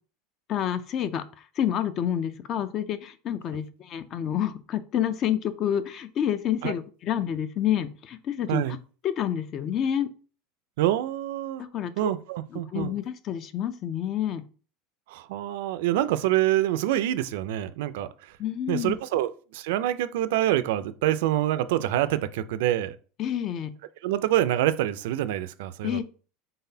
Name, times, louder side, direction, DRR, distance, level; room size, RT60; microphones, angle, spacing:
voice 1, 0.5-8.8 9.0-10.1 11.6-12.1 12.5-14.4 18.4-19.0 23.2-23.7 25.8-26.0, left 10 dB, 35° left, 0.3 m, -28 dB
voice 2, 10.8-11.6 12.0-13.0 15.1-18.3 18.7-23.0 24.0-26.0, right 13 dB, 75° right, 0.3 m, -26 dB
3.9 x 3.6 x 2.7 m
supercardioid pair, 160°, 0 cm